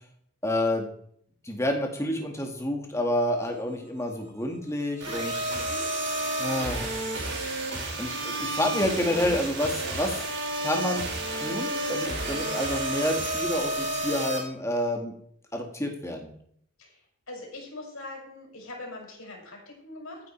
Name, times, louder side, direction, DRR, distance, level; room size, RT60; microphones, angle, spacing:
voice 1, 0.4-0.9 1.4-5.3 6.4-7.0 8.0-10.1 10.6-15.1 15.5-16.3, left 1 dB, 15° left, 2 dB, 2.2 m, -29 dB
sound 1, 5.0-14.4, right 1 dB, 60° right, 4.3 m, -30 dB
voice 2, 5.5-5.9 16.8-16.9 17.3-20.2, left 2 dB, 85° left, -1 dB, 6.2 m, -42 dB
15.0 x 9.5 x 4.7 m, 0.65 s
head